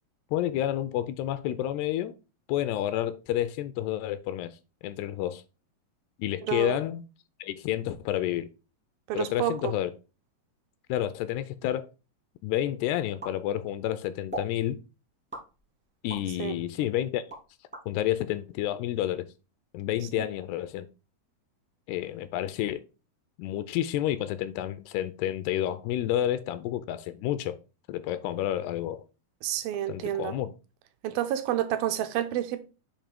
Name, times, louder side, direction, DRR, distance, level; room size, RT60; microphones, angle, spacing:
voice 1, 0.3-2.1 2.5-4.5 4.8-5.4 6.2-7.0 7.4-8.5 9.1-9.9 10.9-11.9 12.4-14.8 16.0-17.2 17.9-19.3 19.7-20.9 21.9-22.8 23.4-27.6 27.9-29.1 29.9-30.5, left 12 dB, 85° left, 2.5 m, -30 dB
voice 2, 6.4-6.8 9.1-9.7 16.4-16.5 29.4-30.4 31.0-32.6, right 12 dB, 80° right, 2.2 m, -29 dB
sound 1, 13.2-13.9 14.3-14.6 15.3-16.3 16.8-17.9, right 1 dB, 15° right, 0.4 m, -40 dB
7.3 x 2.7 x 5.0 m
omnidirectional pair, 4.7 m